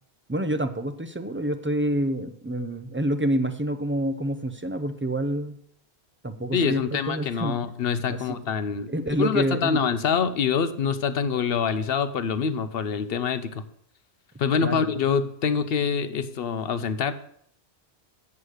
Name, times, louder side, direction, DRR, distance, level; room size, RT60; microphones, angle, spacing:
voice 1, 0.3-5.6 6.2-7.6 8.1-8.4 8.9-9.8 14.6-14.9, right 1 dB, 15° right, 9 dB, 0.4 m, -27 dB
voice 2, 6.5-13.6 14.4-17.1, left 6 dB, 65° left, 12 dB, 0.9 m, -25 dB
8.2 x 7.2 x 6.4 m, 0.66 s
omnidirectional pair, 1.1 m